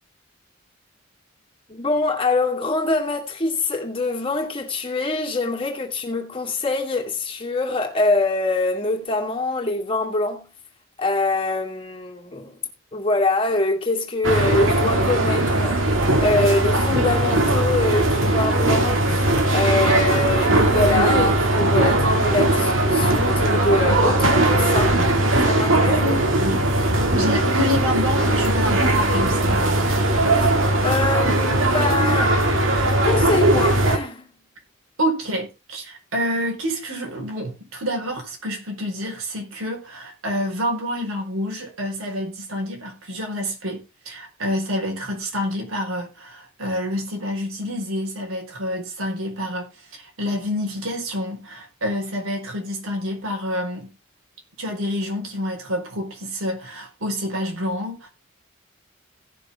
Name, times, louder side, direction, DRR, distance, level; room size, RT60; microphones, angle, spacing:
voice 1, 1.7-10.5 11.0-12.6 12.9-15.8 16.2-25.1 25.4-26.2 30.8-32.4 33.0-34.3, left 2 dB, 25° left, 2.4 m, -24 dB
sound 1, 14.2-34.0, right 1 dB, 70° right, 2.4 m, -19 dB
voice 2, 26.0-26.7 27.2-30.0 35.0-53.9 54.6-58.1, equal, 85° right, 4.7 m, -28 dB
17.0 x 6.7 x 3.6 m
head